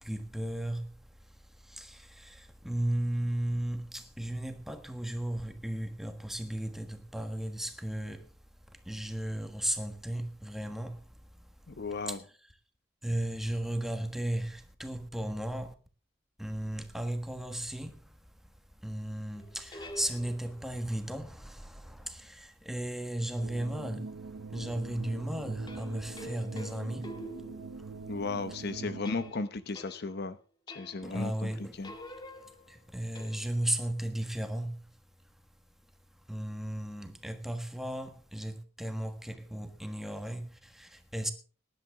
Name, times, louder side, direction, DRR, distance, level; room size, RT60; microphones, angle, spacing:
voice 1, 0.0-8.3 8.7-11.1 12.1-12.2 13.0-15.7 16.4-18.2 18.8-27.2 27.7-27.9 28.8-29.0 31.0-31.8 32.4-34.9 36.3-41.3, right 1 dB, ahead, 1.4 m, -35 dB
voice 2, 11.7-12.2 28.1-30.4 30.7-31.9, left 3 dB, 55° left, 0.8 m, -35 dB
sound 1, 19.4-20.7 25.7-28.1 29.1-30.3 30.7-31.2 31.5-33.8, equal, 25° left, 1.6 m, -47 dB
sound 2, 23.4-29.3, right 4 dB, 85° right, 0.5 m, -43 dB
18.5 x 11.0 x 3.7 m
head